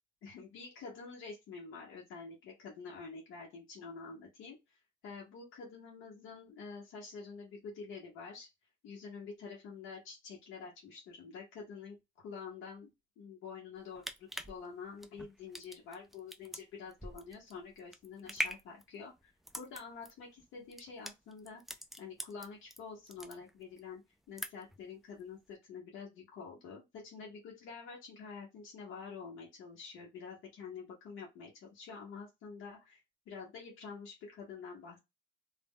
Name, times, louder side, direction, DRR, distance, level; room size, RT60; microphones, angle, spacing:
voice 1, 0.2-8.5 8.8-12.9 13.2-21.6 22.0-24.0 24.3-33.0 33.3-35.0, left 5 dB, 85° left, -3 dB, 0.8 m, -48 dB
sound 1, 13.8-22.8 23.1-23.8 24.1-24.8 25.2-25.3, equal, ahead, 0.3 m, -43 dB
2.1 x 2.0 x 3.5 m, 0.22 s
cardioid pair, 90°, 20 cm